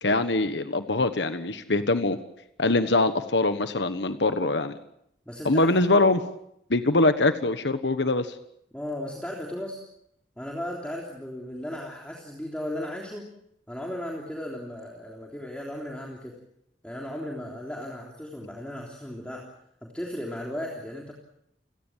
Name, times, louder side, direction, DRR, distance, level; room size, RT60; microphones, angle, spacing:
voice 1, 0.0-2.2 2.6-4.7 5.4-6.2 6.7-8.3, left 2 dB, 80° left, 10 dB, 1.4 m, -23 dB
voice 2, 5.2-6.1 8.7-9.8 10.4-13.3 13.7-16.4 16.8-19.5 19.8-21.1, left 1 dB, 5° left, -1 dB, 3.4 m, -36 dB
29.5 x 17.5 x 7.5 m, 0.78 s
head